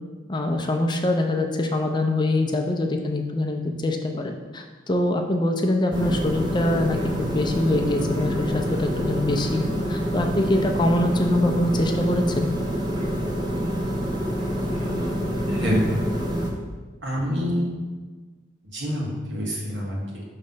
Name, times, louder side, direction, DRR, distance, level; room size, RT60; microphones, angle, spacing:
voice 1, 0.3-9.6 9.9-12.5, left 1 dB, 25° left, 3 dB, 0.5 m, -24 dB
sound 1, 5.9-16.5, equal, 25° right, 0.7 m, -27 dB
voice 2, 14.6-15.1 15.5-15.9 17.0-17.7 18.7-20.2, equal, 80° right, -4 dB, 1.7 m, -27 dB
6.1 x 3.3 x 5.5 m, 1.4 s
head